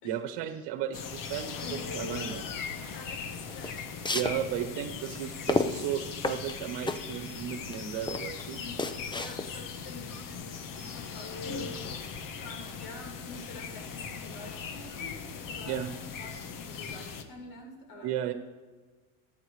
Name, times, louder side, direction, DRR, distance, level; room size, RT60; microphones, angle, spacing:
voice 1, 0.0-2.5 4.1-8.6 15.7-15.9 18.0-18.3, right 10 dB, 70° right, 6 dB, 1.2 m, -34 dB
sound 1, 0.9-17.2, left 5 dB, 50° left, 1.3 m, -39 dB
voice 2, 2.9-3.7 8.5-8.8 9.1-18.1, left 3 dB, 70° left, 0 dB, 4.3 m, -48 dB
sound 2, 3.5-9.8, left 3 dB, 10° left, 0.5 m, -33 dB
25.0 x 9.2 x 3.3 m, 1.4 s
cardioid pair, 125°, 42 cm